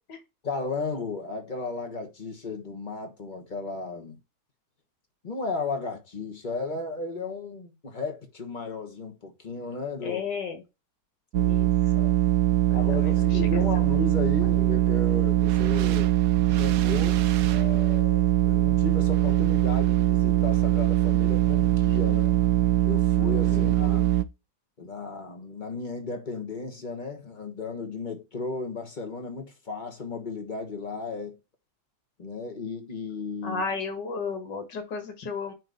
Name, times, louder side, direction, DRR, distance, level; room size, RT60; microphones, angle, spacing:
voice 1, 0.4-4.2 5.2-10.2 11.9-12.2 12.7-16.2 16.5-22.4 22.8-24.0 24.8-31.4 32.2-33.6, left 4 dB, 30° left, 1.3 m, -34 dB
voice 2, 10.0-10.6 11.4-12.1 12.7-13.9 14.4-14.5 23.5-24.1 33.4-35.5, left 5 dB, 80° left, 2.2 m, -34 dB
sound 1, 11.3-24.2, right 15 dB, 70° right, 1.1 m, -22 dB
9.1 x 3.3 x 3.9 m
omnidirectional pair, 1.9 m